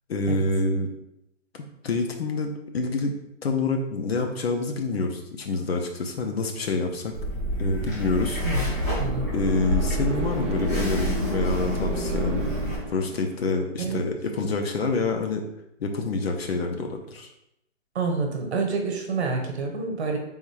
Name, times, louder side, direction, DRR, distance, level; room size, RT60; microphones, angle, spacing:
voice 1, 0.1-0.9 1.8-3.2 3.4-7.1 7.6-8.4 9.3-15.5 15.8-17.3, left 3 dB, 50° left, 3 dB, 0.7 m, -27 dB
sound 1, 6.8-13.7, equal, 20° right, 0.8 m, -33 dB
sound 2, 7.1-12.8, equal, 10° left, 0.6 m, -28 dB
voice 2, 8.4-9.3 13.8-14.0 17.9-20.2, right 4 dB, 55° right, 3 dB, 1.1 m, -28 dB
3.6 x 2.6 x 4.7 m, 0.82 s
hypercardioid pair, 155°, 39 cm